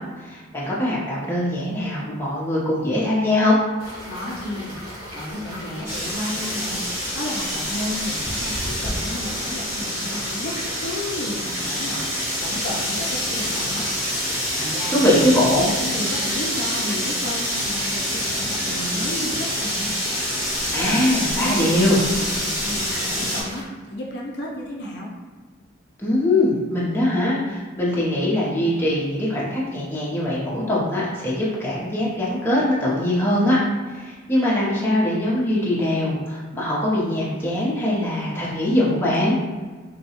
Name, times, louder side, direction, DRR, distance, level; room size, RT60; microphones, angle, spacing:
voice 1, 0.2-3.6 14.9-15.7 20.7-22.0 26.0-39.4, left 1 dB, 10° left, -7 dB, 0.7 m, -22 dB
sound 1, 3.8-23.6, equal, 75° right, 1.4 m, -37 dB
voice 2, 4.1-4.8 5.1-6.8 7.1-13.9 14.5-15.2 15.6-19.9 20.6-23.6 23.9-25.1, left 1 dB, 55° left, -3 dB, 0.5 m, -32 dB
sound 2, 5.9-23.4, equal, 10° right, 0.9 m, -27 dB
3.7 x 2.2 x 2.9 m, 1.4 s
head